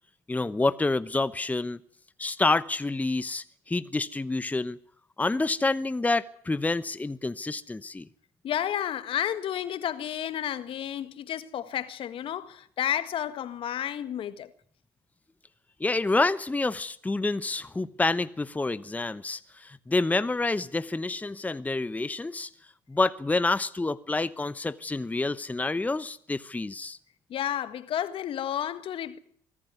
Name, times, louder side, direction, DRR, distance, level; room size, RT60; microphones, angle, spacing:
voice 1, 0.3-1.8 2.2-4.8 5.2-8.1 15.8-22.5 22.9-27.0, left 3 dB, 15° left, 0.9 m, -28 dB
voice 2, 8.4-14.5 27.3-29.2, left 10 dB, 60° left, 1.7 m, -31 dB
24.0 x 15.0 x 9.5 m
hypercardioid pair, 60°, 11 cm